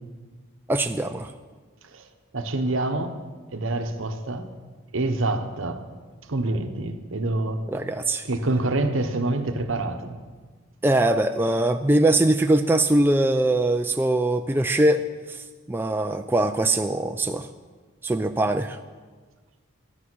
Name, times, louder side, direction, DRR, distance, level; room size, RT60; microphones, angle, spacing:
voice 1, 0.7-1.3 7.7-8.3 10.8-17.5 18.0-18.8, right 1 dB, 10° right, 6 dB, 0.3 m, -22 dB
voice 2, 1.8-3.2 3.5-4.5 4.9-5.9 6.3-7.7 8.2-10.2, right 2 dB, 70° right, 7 dB, 1.0 m, -27 dB
13.5 x 9.9 x 6.2 m, 1.4 s
head